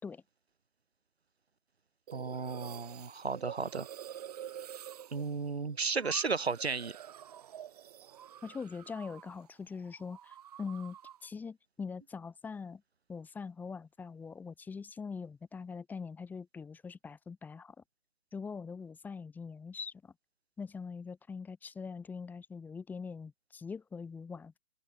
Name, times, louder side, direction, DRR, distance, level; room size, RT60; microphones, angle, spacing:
sound 1, 2.1-9.5 9.7-11.3, right 10 dB, 40° right, 4.5 m, -48 dB
voice 1, 2.1-3.9 5.1-7.0, right 4 dB, 85° right, 3.4 m, -34 dB
voice 2, 8.4-11.0 11.2-12.8 13.1-17.7 18.3-20.1 20.6-24.6, left 5 dB, 5° left, 4.6 m, -42 dB
open air
hypercardioid pair, 160°, 31 cm